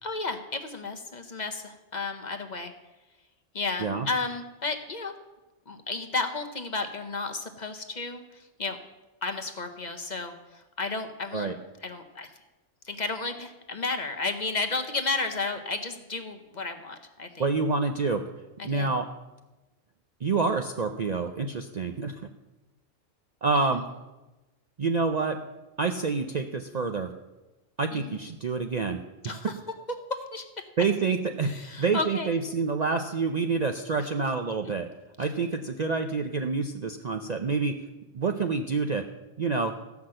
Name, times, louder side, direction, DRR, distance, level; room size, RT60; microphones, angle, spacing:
voice 1, 0.0-2.7 3.5-5.1 5.7-8.8 9.2-11.5 11.8-12.3 12.8-17.5 18.6-18.9 23.5-23.8 27.9-28.2 29.2-29.5 30.3-30.4 31.4-32.3, left 3 dB, 40° left, 5 dB, 0.9 m, -33 dB
voice 2, 17.4-18.2 18.6-19.1 20.2-22.2 23.4-23.8 24.8-25.4 25.8-27.1 27.8-29.4 30.8-34.9 35.2-37.8 38.1-39.1 39.4-39.7, right 4 dB, 45° right, 5 dB, 0.5 m, -27 dB
14.5 x 5.9 x 7.6 m, 1.1 s
omnidirectional pair, 1.3 m